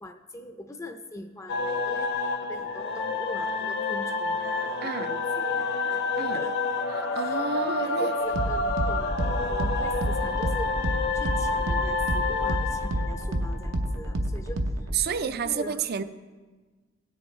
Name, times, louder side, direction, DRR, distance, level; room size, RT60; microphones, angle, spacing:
voice 1, 0.0-6.6 7.1-15.9, left 1 dB, 15° left, 6 dB, 0.4 m, -42 dB
sound 1, 1.5-14.1, left 3 dB, 55° left, 0.7 m, -29 dB
voice 2, 4.8-5.1 6.2-6.4 6.9-8.1 14.9-16.0, right 7 dB, 50° right, 12 dB, 0.4 m, -30 dB
sound 2, 6.3-15.0, right 1 dB, 80° right, 0.8 m, -30 dB
16.5 x 7.7 x 3.1 m, 1.4 s
head